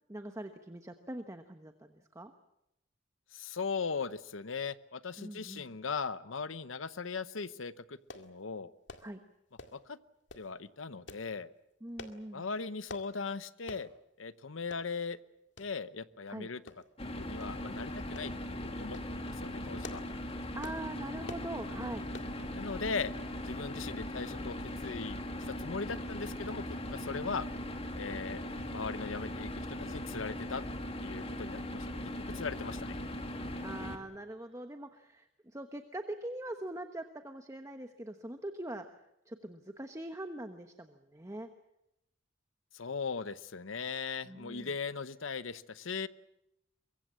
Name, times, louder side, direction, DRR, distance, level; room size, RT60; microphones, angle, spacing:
voice 1, 0.1-2.3 5.2-5.7 9.0-9.2 11.8-12.4 16.3-16.5 20.6-22.1 27.1-27.4 33.6-38.9 39.3-41.5 44.2-44.7, right 1 dB, 15° right, 7 dB, 1.1 m, -42 dB
voice 2, 3.3-8.7 9.7-10.0 10.4-11.5 12.3-13.9 14.2-15.2 15.6-16.6 17.0-20.0 22.5-23.1 23.4-24.6 24.8-27.5 28.0-28.4 28.7-30.6 31.0-33.0 42.7-46.1, left 5 dB, 85° left, 14 dB, 0.9 m, -39 dB
sound 1, 8.1-8.3 8.9-9.1 9.6-9.8 10.3-10.5 11.1-11.3 12.0-12.2 12.9-13.1 13.7-13.9 14.3-14.4 14.7-14.9 15.6-15.7 16.7-17.0 17.4-17.5 18.2-18.3 18.8-19.1 19.6-20.1 20.6-20.8 21.2-21.5 22.1-22.3 22.9-23.0 23.3-23.4, left 2 dB, 65° left, 2.1 m, -47 dB
sound 2, 17.0-34.0, left 1 dB, 30° left, 2.3 m, -39 dB
23.5 x 23.0 x 7.5 m, 0.85 s
head